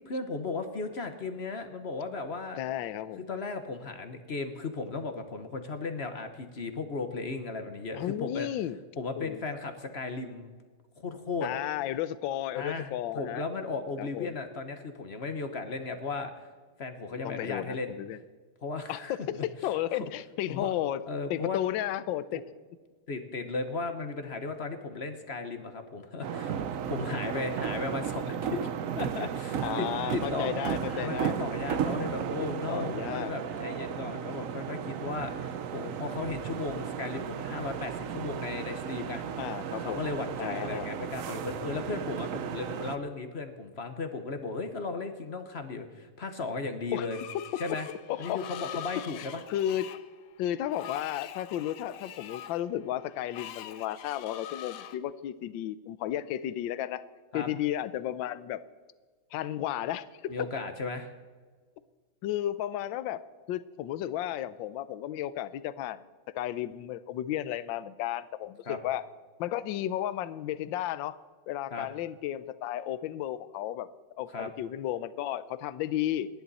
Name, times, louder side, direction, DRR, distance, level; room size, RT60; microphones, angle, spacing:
voice 1, 0.0-2.6 3.3-8.5 9.0-10.5 11.0-11.5 12.5-16.5 16.8-17.9 18.6-19.4 19.9-20.1 20.5-20.7 21.1-21.6 23.1-26.6 26.9-28.7 28.9-30.5 30.9-39.5 39.8-47.2 47.6-47.9 48.2-49.4 57.3-57.5 60.3-61.1 68.7-68.8 71.7-71.9 74.3-74.5, left 3 dB, 45° left, 8 dB, 0.9 m, -36 dB
voice 2, 2.6-3.3 7.9-8.8 9.2-9.4 11.4-13.4 14.0-14.3 17.2-18.2 18.9-21.0 21.3-22.4 29.6-31.4 32.7-33.3 34.1-34.2 39.4-40.0 40.4-40.9 46.9-47.1 48.1-48.4 49.2-49.9 50.4-57.0 57.3-58.6 59.3-60.5 62.2-66.0 66.3-69.1 69.4-71.2 71.5-73.9 74.2-76.3, left 12 dB, 70° left, 15 dB, 1.3 m, -33 dB
sound 1, 26.2-43.0, right 8 dB, 75° right, 0.7 m, -34 dB
Screech, 47.0-55.0, left 10 dB, 85° left, 1.7 m, -44 dB
29.5 x 10.5 x 4.1 m, 1.5 s
omnidirectional pair, 2.4 m